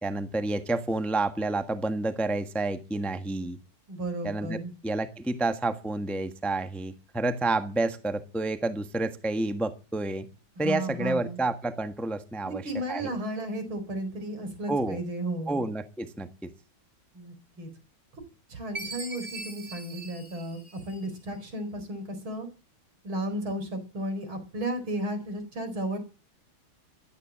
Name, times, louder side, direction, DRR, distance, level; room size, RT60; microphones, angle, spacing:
voice 1, 0.0-3.6 4.2-10.3 10.6-13.1 14.7-15.0 15.5-16.5, right 2 dB, ahead, 9 dB, 1.1 m, -29 dB
voice 2, 3.9-4.7 10.6-11.4 12.4-15.6 17.1-17.7 18.5-22.5 23.0-26.0, right 1 dB, 75° right, 9 dB, 5.2 m, -34 dB
Chime, 18.7-21.3, right 2 dB, 30° right, 4.9 m, -41 dB
15.5 x 12.5 x 7.4 m, 0.33 s
omnidirectional pair, 2.3 m